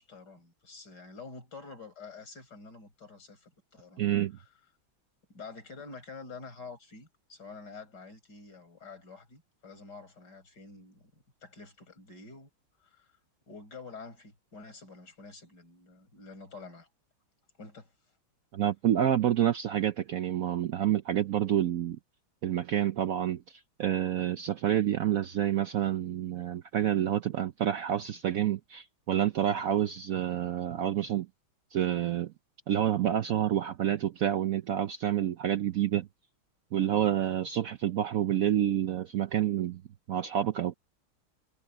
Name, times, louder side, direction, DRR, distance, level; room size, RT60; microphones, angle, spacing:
voice 1, 0.0-4.0 4.4-4.5 5.3-11.1 11.4-12.5 12.8-13.1 13.5-16.9 17.6-17.9, left 4 dB, 55° left, 6.4 m, -48 dB
voice 2, 4.0-4.4 18.5-22.0 22.4-31.3 31.7-32.3 32.7-36.1 36.7-39.8 40.1-40.7, right 11 dB, 85° right, 0.7 m, -28 dB
omnidirectional pair, 2.2 m